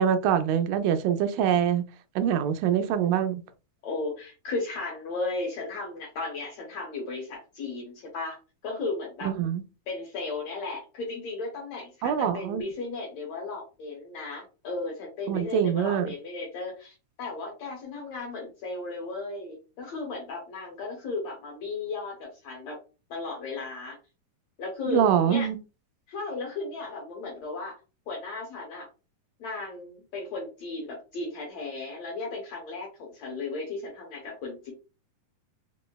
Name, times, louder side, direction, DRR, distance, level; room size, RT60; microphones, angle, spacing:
voice 1, 0.0-1.9 2.2-3.4 9.2-9.6 12.0-12.6 15.3-16.1 24.9-25.6, right 8 dB, 85° right, 2.2 m, -24 dB
voice 2, 3.8-8.4 8.6-9.3 9.9-22.8 23.1-24.0 24.6-25.5 26.1-27.8 28.1-28.9 29.4-34.7, left 3 dB, 70° left, 1.6 m, -35 dB
5.3 x 2.0 x 2.2 m
omnidirectional pair, 3.9 m